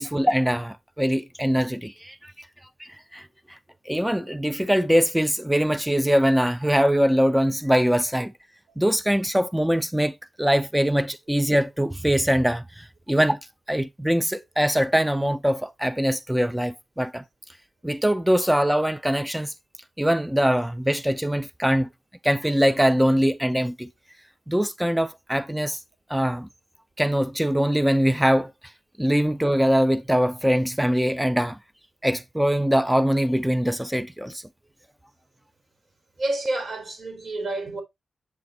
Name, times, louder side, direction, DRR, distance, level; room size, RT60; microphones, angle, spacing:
voice 1, 0.0-2.5 2.8-3.6 3.9-8.3 8.8-13.4 13.7-17.2 17.8-19.5 20.0-21.9 22.2-23.9 24.5-25.8 26.1-26.5 27.0-28.5 29.0-31.6 32.0-34.4, equal, 5° right, 0.4 m, -22 dB
voice 2, 36.2-37.8, right 2 dB, 70° right, 4.3 m, -29 dB
8.4 x 6.8 x 2.8 m
cardioid pair, 60°, 0 cm